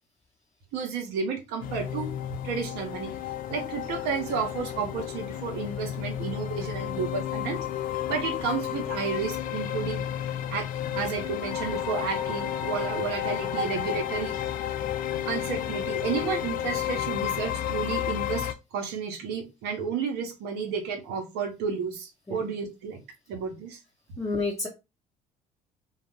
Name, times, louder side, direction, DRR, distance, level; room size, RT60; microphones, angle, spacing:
voice 1, 0.7-2.1 2.4-3.1 3.5-7.6 8.1-10.0 10.5-10.7 10.9-14.3 15.3-23.0 23.3-23.8, right 6 dB, 65° right, 4 dB, 0.9 m, -32 dB
sound 1, 1.6-18.5, left 11 dB, 50° left, 0.4 m, -32 dB
voice 2, 24.2-24.7, left 3 dB, 15° left, -2 dB, 0.8 m, -29 dB
2.4 x 2.3 x 3.0 m, 0.26 s
hypercardioid pair, 60°, 18 cm